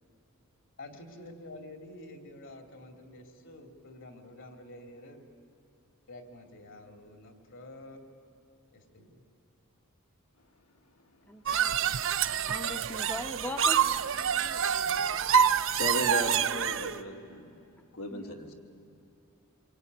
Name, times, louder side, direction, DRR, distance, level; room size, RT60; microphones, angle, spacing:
voice 1, 0.8-5.2 6.1-8.0 8.7-9.3, left 1 dB, 60° left, 5 dB, 2.8 m, -48 dB
voice 2, 11.3-11.7 12.5-14.7 18.1-18.3, left 1 dB, 10° left, 5 dB, 1.0 m, -41 dB
guitar string creaking, 11.5-17.0, right 8 dB, 60° right, 0.7 m, -27 dB
voice 3, 15.7-17.6 17.9-18.5, left 1 dB, 80° left, 1 dB, 2.7 m, -35 dB
26.5 x 23.5 x 9.6 m, 2.6 s
head